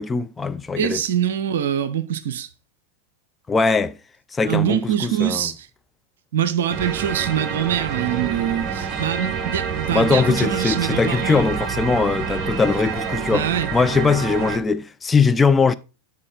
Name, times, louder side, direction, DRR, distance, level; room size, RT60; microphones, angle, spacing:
voice 1, 0.0-1.0 3.5-4.0 4.3-5.5 9.9-15.7, left 4 dB, 15° left, 0.4 m, -20 dB
voice 2, 0.8-2.5 4.5-5.7 6.3-11.5 13.3-13.7, right 10 dB, 60° right, 0.6 m, -24 dB
sound 1, 6.7-14.6, right 6 dB, 30° right, 0.9 m, -27 dB
9.7 x 4.6 x 3.8 m
figure-of-eight pair, 90°, 0 cm